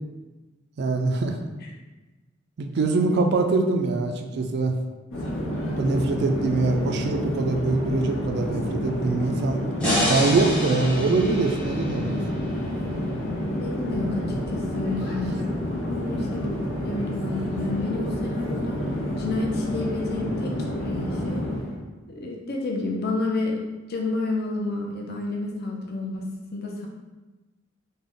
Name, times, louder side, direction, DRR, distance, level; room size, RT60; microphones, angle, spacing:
voice 1, 0.8-1.4 2.6-4.7 5.8-9.6 10.1-12.2, right 3 dB, 55° right, 5 dB, 0.3 m, -24 dB
voice 2, 3.0-3.4 6.4-6.5 13.6-14.2 14.5-18.8 19.2-20.6 20.8-21.5 22.1-23.6 23.9-26.2 26.5-26.9, left 3 dB, 50° left, -1 dB, 0.5 m, -30 dB
Conversation / Chatter / Fixed-wing aircraft airplane, 5.1-21.8, equal, 80° left, 0.8 m, -29 dB
sound 1, 9.8-13.0, left 1 dB, 5° left, 0.7 m, -28 dB
3.6 x 2.1 x 3.6 m, 1.2 s
head